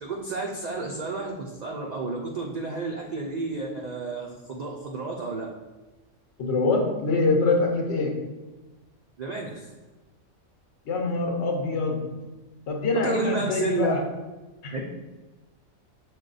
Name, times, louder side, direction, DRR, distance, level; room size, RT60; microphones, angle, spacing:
voice 1, 0.0-5.5 9.2-9.7 12.9-14.0 14.7-14.8, right 3 dB, 80° right, -1 dB, 0.3 m, -31 dB
voice 2, 6.4-8.3 10.9-12.2 12.7-14.0 14.6-14.8, left 3 dB, 65° left, 2 dB, 0.9 m, -25 dB
6.4 x 2.2 x 3.9 m, 1.2 s
omnidirectional pair, 1.4 m